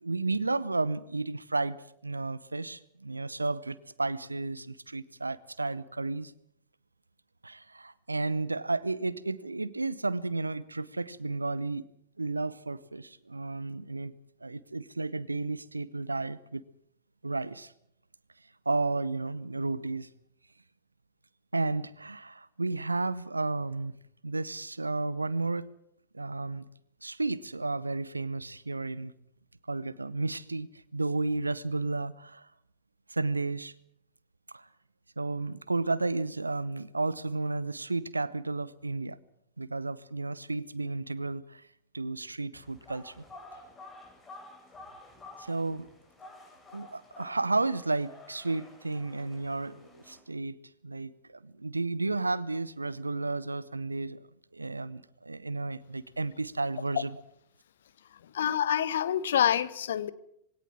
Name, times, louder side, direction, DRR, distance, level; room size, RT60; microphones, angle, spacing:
voice 1, 0.0-1.8 2.0-6.3 7.4-11.9 12.2-14.1 14.4-16.6 17.2-17.7 18.7-20.1 21.5-25.7 26.1-26.7 27.0-29.1 29.7-32.5 33.1-33.7 34.5-34.7 35.2-39.2 39.6-41.6 41.9-43.2 45.4-45.9 46.7-50.6 50.8-54.2 54.5-57.1, right 3 dB, 80° right, 20 dB, 0.8 m, -32 dB
sound 1, 42.5-50.2, left 2 dB, 20° left, 6.8 m, -51 dB
voice 2, 58.2-60.1, left 10 dB, 60° left, 17 dB, 1.0 m, -27 dB
21.5 x 17.5 x 7.5 m, 0.72 s
figure-of-eight pair, 90°, 0 cm